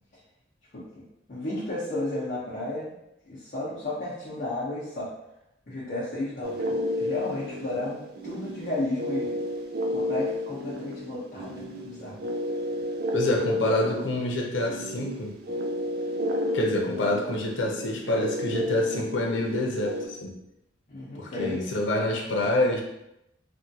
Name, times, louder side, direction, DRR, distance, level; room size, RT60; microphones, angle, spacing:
voice 1, 1.3-2.9 3.2-5.1 5.7-9.3 9.9-12.2 20.9-21.6, left 2 dB, 50° left, -9 dB, 0.7 m, -33 dB
sound 1, 6.4-20.1, left 1 dB, 55° right, 0.4 m, -31 dB
voice 2, 13.1-15.3 16.5-20.4 21.2-22.8, left 1 dB, 85° left, 0 dB, 0.6 m, -27 dB
3.5 x 2.2 x 2.7 m, 0.86 s
head